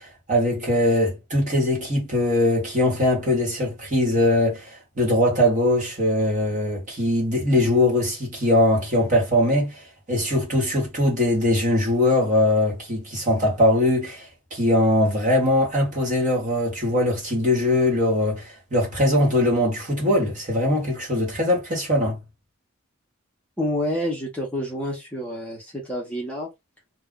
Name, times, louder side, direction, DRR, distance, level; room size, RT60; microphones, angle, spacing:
voice 1, 0.0-9.8 10.1-22.2, left 1 dB, 35° right, 1.2 m, -21 dB
voice 2, 23.6-26.5, equal, 5° left, 0.8 m, -28 dB
2.3 x 2.2 x 3.6 m
head